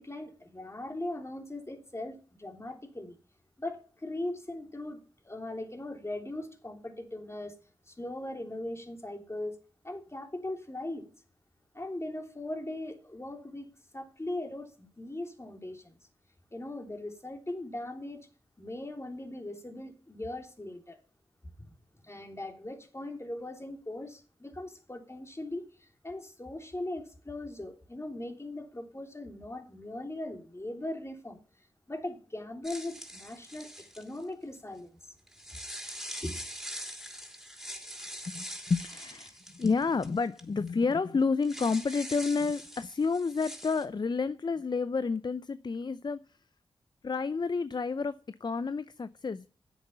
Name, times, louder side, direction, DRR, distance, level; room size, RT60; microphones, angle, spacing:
voice 1, 0.0-3.2 3.6-7.6 7.9-9.6 9.8-11.1 11.7-13.7 13.9-16.0 16.5-18.3 18.6-21.0 21.6-21.7 22.0-31.4 31.9-35.0 35.5-35.6 36.2-36.4, left 1 dB, 25° left, 3.2 m, -39 dB
sound 1, 32.6-34.2 35.3-40.4 40.7-40.8 41.4-43.8, equal, ahead, 4.2 m, -43 dB
voice 2, 38.3-46.2 47.0-49.5, left 4 dB, 45° left, 0.6 m, -30 dB
10.5 x 8.1 x 6.7 m
cardioid pair, 40°, 11 cm